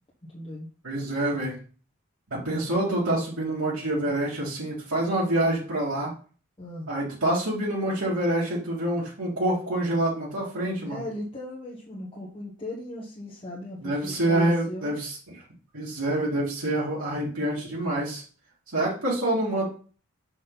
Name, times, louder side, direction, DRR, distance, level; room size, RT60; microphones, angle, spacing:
voice 1, 0.3-0.7 6.6-6.9 10.8-14.9, left 1 dB, 25° left, -6 dB, 1.5 m, -37 dB
voice 2, 0.8-1.6 2.3-6.1 6.9-11.0 13.8-15.2 15.7-18.2 18.7-19.6, right 1 dB, 85° right, -7 dB, 2.7 m, -26 dB
6.3 x 6.0 x 4.1 m, 0.40 s
head